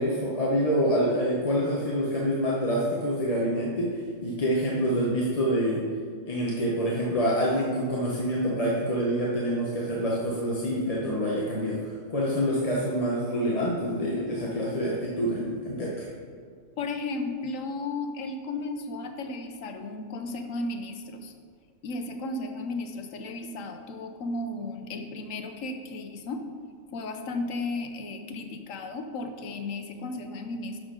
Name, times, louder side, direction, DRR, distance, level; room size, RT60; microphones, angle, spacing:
voice 1, 0.0-5.8 6.2-16.1, equal, 30° left, -4 dB, 1.0 m, -27 dB
voice 2, 16.8-21.3 21.8-26.4 26.9-30.8, left 2 dB, 85° left, 6 dB, 1.2 m, -34 dB
11.0 x 6.4 x 3.8 m, 2.1 s
omnidirectional pair, 1.3 m